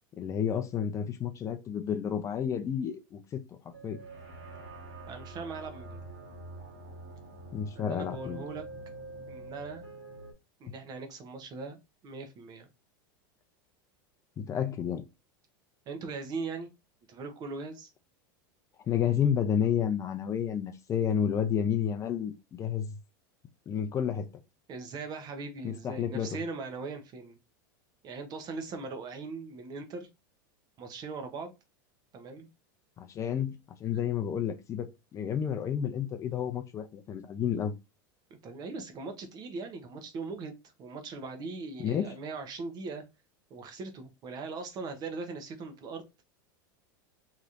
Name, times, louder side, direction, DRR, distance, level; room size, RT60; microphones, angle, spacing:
voice 1, 0.2-3.4 3.8-4.0 7.5-8.4 14.4-15.0 18.9-23.0 23.7-24.3 25.6-26.4 33.0-37.7 41.8-42.1, left 8 dB, 30° left, 0.5 m, -31 dB
sound 1, 3.7-10.3, right 2 dB, 55° right, 1.5 m, -45 dB
voice 2, 5.1-6.0 7.7-8.6 9.3-9.9 10.6-11.8 12.0-12.7 15.9-16.7 17.1-17.9 24.7-27.4 28.0-30.1 30.8-31.5 32.1-32.5 38.3-43.0 43.5-46.0, right 4 dB, 40° right, 0.9 m, -40 dB
3.1 x 2.9 x 2.5 m
supercardioid pair, 120°, 11 cm